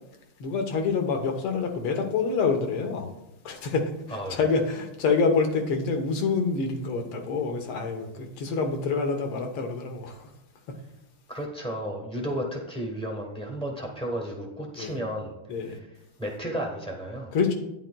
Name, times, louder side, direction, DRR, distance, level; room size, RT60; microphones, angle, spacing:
voice 1, 0.4-3.1 3.5-10.3 14.8-14.9 15.5-15.8 17.3-17.5, left 4 dB, 85° left, 4 dB, 1.9 m, -27 dB
voice 2, 11.3-15.3 15.6-15.9 16.2-17.3, equal, 5° left, 0 dB, 0.4 m, -33 dB
11.5 x 9.5 x 2.2 m, 0.91 s
omnidirectional pair, 2.3 m